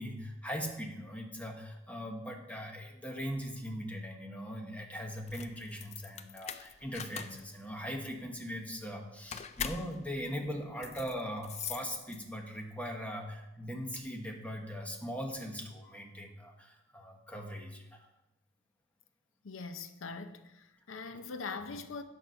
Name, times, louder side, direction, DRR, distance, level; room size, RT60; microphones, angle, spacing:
voice 1, 0.0-18.1, equal, 5° left, 1.1 m, -40 dB
sound 1, 5.2-12.5, left 7 dB, 30° left, 0.3 m, -43 dB
voice 2, 19.4-22.0, left 4 dB, 75° left, 0.6 m, -42 dB
9.0 x 6.0 x 5.3 m
head